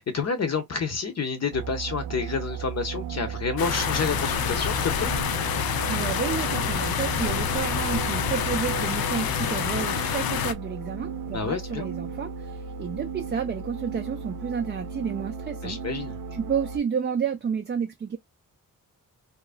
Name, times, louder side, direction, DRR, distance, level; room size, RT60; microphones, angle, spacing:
voice 1, 0.0-5.1 11.3-11.9 15.6-16.2, left 5 dB, 45° left, 0.7 m, -29 dB
sound 1, 1.5-16.8, right 7 dB, 70° right, 0.8 m, -35 dB
sound 2, 3.6-10.5, left 9 dB, 85° left, 0.5 m, -27 dB
voice 2, 5.9-15.8 16.3-18.2, right 7 dB, 30° right, 0.4 m, -31 dB
2.9 x 2.4 x 2.4 m
wide cardioid pair, 115°, 35 cm